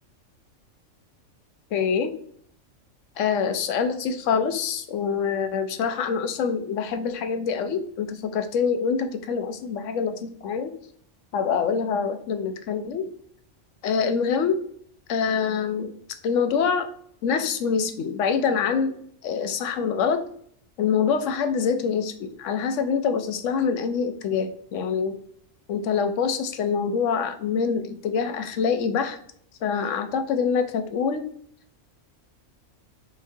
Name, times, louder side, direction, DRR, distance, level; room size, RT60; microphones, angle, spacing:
voice 1, 1.7-2.2 3.2-10.7 11.3-13.1 13.8-14.6 15.1-15.9 16.2-16.9 17.2-18.9 19.2-20.2 20.8-25.2 25.7-29.2 29.6-31.3, left 6 dB, 80° left, 8 dB, 0.9 m, -25 dB
5.7 x 3.1 x 2.6 m, 0.63 s
omnidirectional pair, 1.3 m